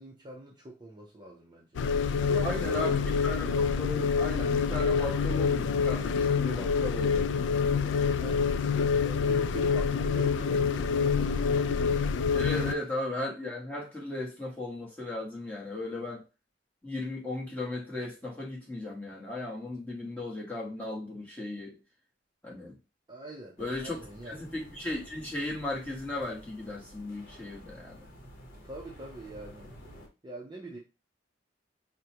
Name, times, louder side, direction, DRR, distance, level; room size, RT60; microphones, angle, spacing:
voice 1, 0.0-1.7 2.2-3.5 8.2-8.4 9.0-12.7 23.1-24.4 28.6-29.7 30.2-30.8, right 2 dB, 25° right, 0.6 m, -44 dB
sound 1, 1.7-12.7, left 5 dB, 85° left, 0.3 m, -27 dB
voice 2, 2.4-7.7 12.3-16.2 16.8-21.8 22.4-22.8 23.6-24.0 24.3-28.0, left 2 dB, 10° left, 1.2 m, -36 dB
sound 2, 23.6-30.1, equal, 50° left, 1.0 m, -51 dB
4.8 x 2.2 x 2.8 m
head